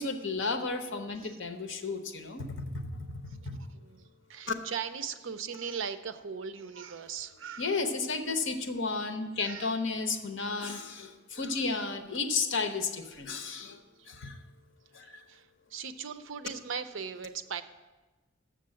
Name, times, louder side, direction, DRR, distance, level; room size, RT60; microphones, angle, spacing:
voice 1, 0.0-2.8 3.1-3.6 4.5-4.6 7.6-13.8 14.1-14.4 14.9-15.2, left 4 dB, 65° left, 8 dB, 0.8 m, -33 dB
voice 2, 3.4-7.7 9.4-9.8 15.0-17.6, right 6 dB, 70° right, 10 dB, 0.5 m, -39 dB
6.8 x 6.6 x 7.6 m, 1.2 s
head